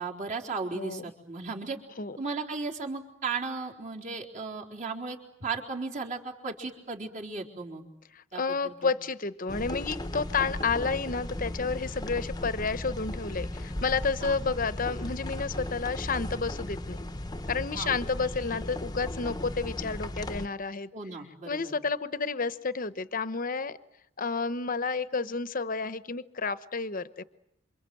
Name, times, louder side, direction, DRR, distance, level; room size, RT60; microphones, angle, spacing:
voice 1, 0.0-1.8 2.2-7.8 8.3-8.9 14.2-14.4 17.8-17.9 20.9-21.7, right 4 dB, 40° right, 0 dB, 4.2 m, -36 dB
voice 2, 0.7-1.0 2.0-2.2 8.1-17.0 17.5-20.9 21.5-23.8 24.2-27.2, left 4 dB, 40° left, 13 dB, 1.0 m, -31 dB
sound 1, 9.5-20.5, left 1 dB, 20° left, 1.0 m, -36 dB
28.0 x 25.5 x 7.9 m, 0.79 s
head